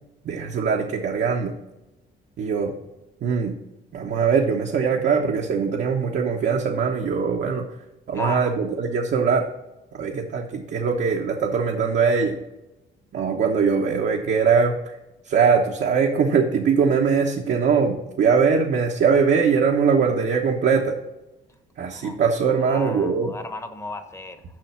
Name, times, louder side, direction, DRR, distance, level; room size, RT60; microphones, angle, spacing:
voice 1, 0.2-1.5 2.4-2.7 3.2-3.6 3.9-7.7 8.1-9.5 9.9-12.4 13.1-14.9 15.3-20.9 21.8-23.3, right 5 dB, 60° right, 0 dB, 1.2 m, -21 dB
voice 2, 8.1-8.5 21.9-22.2 22.5-24.4, left 2 dB, 15° left, 8 dB, 1.1 m, -35 dB
7.5 x 5.6 x 6.1 m, 0.96 s
cardioid pair, 90°, 20 cm